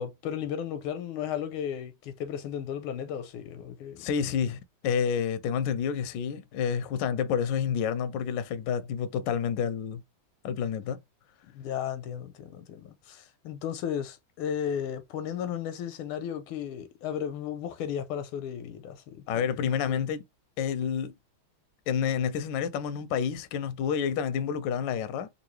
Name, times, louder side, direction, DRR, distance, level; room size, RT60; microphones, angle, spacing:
voice 1, 0.0-4.0 11.4-20.1, left 9 dB, 90° left, 1.5 m, -35 dB
voice 2, 4.0-10.0 10.4-11.0 19.3-20.2 20.6-21.1 21.9-25.3, left 7 dB, 70° left, 1.1 m, -29 dB
3.7 x 2.6 x 3.1 m
omnidirectional pair, 2.3 m